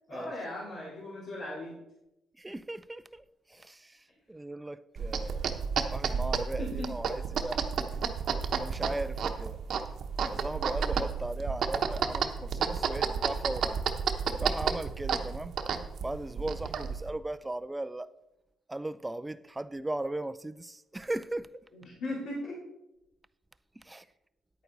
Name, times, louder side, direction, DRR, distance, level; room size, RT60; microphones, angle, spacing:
voice 1, 0.1-1.7 6.6-6.9 21.7-22.6, left 1 dB, 70° left, 3.6 m, -38 dB
voice 2, 2.4-5.4 5.9-7.7 8.6-9.6 10.3-13.8 14.4-15.5 16.0-18.1 18.7-21.5 23.8-24.1, right 2 dB, 15° right, 0.4 m, -37 dB
sound 1, 5.0-17.1, right 6 dB, 65° right, 0.9 m, -31 dB
10.0 x 9.0 x 4.0 m
cardioid pair, 90°, 0 cm